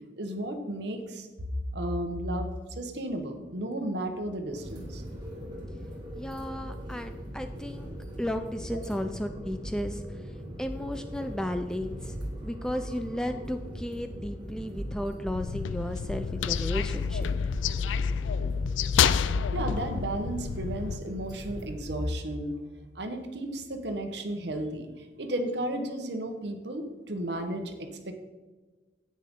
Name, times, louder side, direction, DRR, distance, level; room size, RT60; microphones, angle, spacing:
voice 1, 0.2-1.3 1.7-5.0 8.7-8.8 19.5-22.6 22.9-28.1, right 1 dB, 65° right, 6 dB, 1.1 m, -33 dB
sound 1, 4.4-22.1, equal, 25° right, 2.1 m, -40 dB
voice 2, 6.1-7.9 8.2-12.2 12.4-17.3, left 1 dB, 5° left, 7 dB, 0.3 m, -34 dB
sound 2, 15.3-21.0, left 7 dB, 85° left, 0.4 m, -28 dB
10.0 x 8.5 x 3.7 m, 1.3 s
head